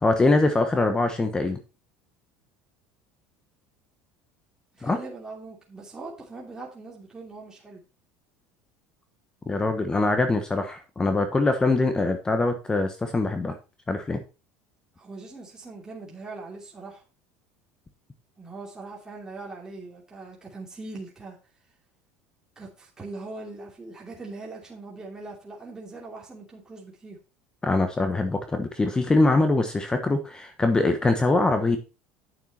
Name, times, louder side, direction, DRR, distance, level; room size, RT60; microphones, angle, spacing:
voice 1, 0.0-1.6 4.8-5.0 9.5-13.6 13.9-14.2 27.6-31.8, left 2 dB, 15° left, 7 dB, 1.2 m, -23 dB
voice 2, 4.7-7.8 15.0-17.0 18.4-21.4 22.6-27.2, right 3 dB, 15° right, -2 dB, 2.9 m, -41 dB
9.3 x 6.8 x 4.4 m, 0.31 s
supercardioid pair, 95°, 4 cm